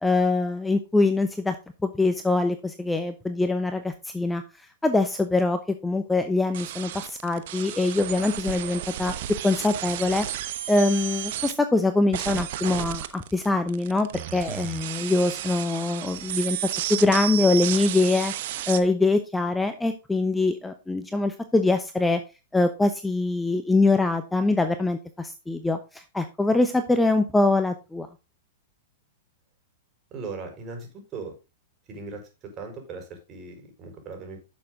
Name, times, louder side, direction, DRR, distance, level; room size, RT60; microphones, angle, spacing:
voice 1, 0.0-1.6 1.8-16.6 16.9-18.3 18.7-22.2 22.5-28.1, left 2 dB, 5° left, 8 dB, 0.9 m, -24 dB
sound 1, 6.5-11.5 12.1-18.8, right 12 dB, 60° right, 1.0 m, -33 dB
voice 2, 30.1-31.3 31.9-32.2 32.6-34.4, right 4 dB, 35° right, 3 dB, 4.7 m, -38 dB
10.5 x 6.9 x 3.7 m, 0.28 s
hypercardioid pair, 115°, 0 cm